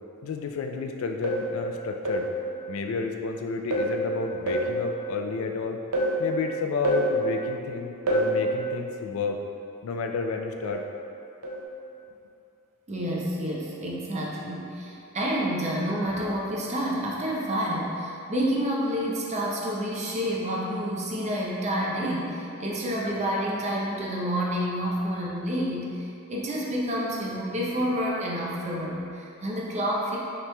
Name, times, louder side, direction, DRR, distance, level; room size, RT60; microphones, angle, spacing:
voice 1, 0.2-2.3 2.7-5.8 6.2-9.4 9.8-10.8, left 4 dB, 65° left, 3 dB, 0.3 m, -31 dB
sound 1, 1.2-1.5 2.0-2.4 3.7-4.0 4.5-4.8 5.9-6.2 6.8-7.2 8.1-8.4 10.6-10.9 11.4-11.6, right 1 dB, 80° right, 0.6 m, -26 dB
voice 2, 12.9-30.2, equal, 30° right, -4 dB, 0.5 m, -29 dB
5.7 x 3.0 x 2.2 m, 2.7 s
head